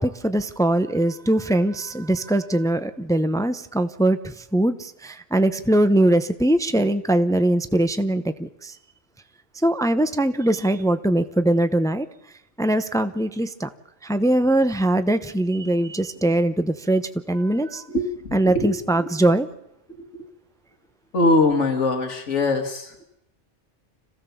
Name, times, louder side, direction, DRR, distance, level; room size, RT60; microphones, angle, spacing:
voice 1, 0.0-4.2 4.5-8.7 9.6-12.1 12.6-13.7 14.0-17.0 17.3-17.8 18.3-19.5, right 1 dB, 5° left, 11 dB, 0.6 m, -21 dB
voice 2, 17.9-19.1 20.0-20.1 21.1-23.0, left 2 dB, 80° left, 5 dB, 2.0 m, -22 dB
26.5 x 16.0 x 7.1 m, 0.83 s
omnidirectional pair, 1.2 m